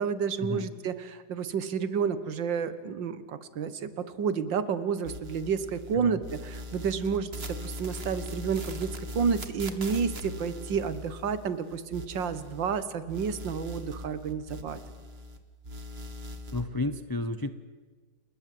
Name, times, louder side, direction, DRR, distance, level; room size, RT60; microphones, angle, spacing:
voice 1, 0.0-8.9 9.2-14.8, right 6 dB, 90° right, 13 dB, 2.0 m, -30 dB
sound 1, 5.0-5.9 6.2-12.8 13.1-15.4 15.6-16.6, left 1 dB, 35° right, 1.8 m, -40 dB
voice 2, 16.5-17.5, left 2 dB, 25° left, 12 dB, 0.5 m, -32 dB
30.0 x 20.0 x 7.7 m, 1.4 s
omnidirectional pair, 1.9 m